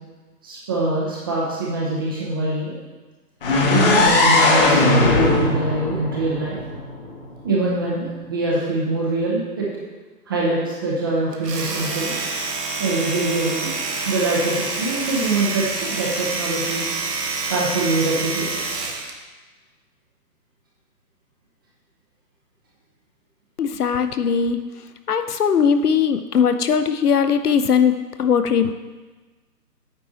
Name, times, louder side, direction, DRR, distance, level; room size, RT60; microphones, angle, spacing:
voice 1, 0.4-2.7 4.0-6.6 7.4-9.8 10.3-12.1 12.8-13.7 14.0-16.9 17.5-18.5, right 2 dB, 15° right, -5 dB, 0.8 m, -24 dB
sound 1, 3.4-7.3, left 2 dB, 35° left, 1.2 m, -18 dB
Domestic sounds home sounds, 11.3-19.2, right 3 dB, 75° right, 1.3 m, -27 dB
voice 2, 23.6-24.6 25.1-28.7, left 7 dB, 65° left, 9 dB, 0.7 m, -19 dB
9.0 x 4.7 x 4.1 m, 1.3 s
figure-of-eight pair, 150°, 49 cm